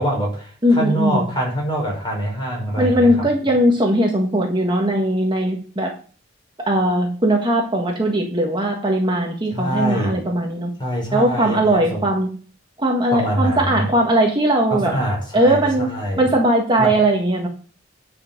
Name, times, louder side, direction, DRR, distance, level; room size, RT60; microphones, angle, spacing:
voice 1, 0.0-0.4 0.7-3.3 9.5-10.2 10.8-12.0 13.1-13.9 14.7-15.6 15.9-16.2 16.8-16.9, equal, 25° left, -1 dB, 5.1 m, -24 dB
voice 2, 0.6-1.3 2.8-5.9 6.7-10.7 11.1-12.3 12.8-14.9 15.3-15.9 16.2-17.5, right 1 dB, 25° right, 0 dB, 1.6 m, -19 dB
9.8 x 5.9 x 6.0 m, 0.39 s
head